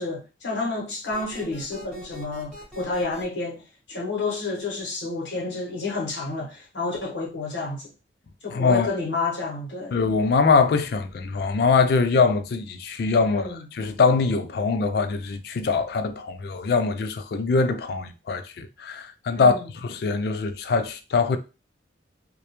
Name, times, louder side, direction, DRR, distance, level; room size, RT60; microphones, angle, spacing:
voice 1, 0.0-3.6 3.9-7.9 8.4-10.0 13.3-13.6 19.3-19.7, left 3 dB, 80° left, 0.9 m, -30 dB
sound 1, 1.1-3.2, right 1 dB, 5° left, 1.1 m, -42 dB
voice 2, 8.5-8.9 9.9-21.4, left 4 dB, 60° left, 0.3 m, -23 dB
2.2 x 2.1 x 2.9 m
head